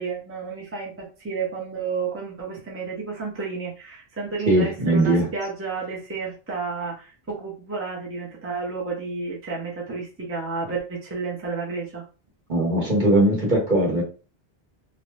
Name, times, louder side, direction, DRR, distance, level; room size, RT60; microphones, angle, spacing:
voice 1, 0.0-12.0, right 4 dB, 15° right, -3 dB, 0.7 m, -31 dB
voice 2, 4.5-5.3 12.5-14.0, right 1 dB, 50° right, -2 dB, 1.2 m, -20 dB
2.6 x 2.2 x 3.2 m, 0.34 s
omnidirectional pair, 1.1 m